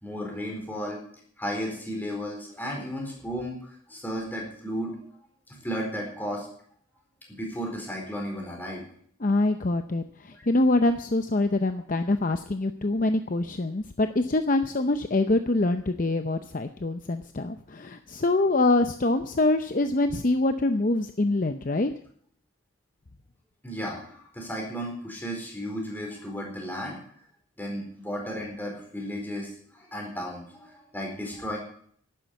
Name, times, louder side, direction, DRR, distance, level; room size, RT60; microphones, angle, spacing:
voice 1, 0.0-1.0 1.4-5.0 5.5-6.5 7.3-8.8 23.6-27.0 27.6-31.6, equal, 10° left, 0 dB, 4.3 m, -34 dB
voice 2, 9.2-21.9, left 2 dB, 40° left, 8 dB, 0.6 m, -25 dB
12.0 x 10.0 x 8.3 m, 0.62 s
head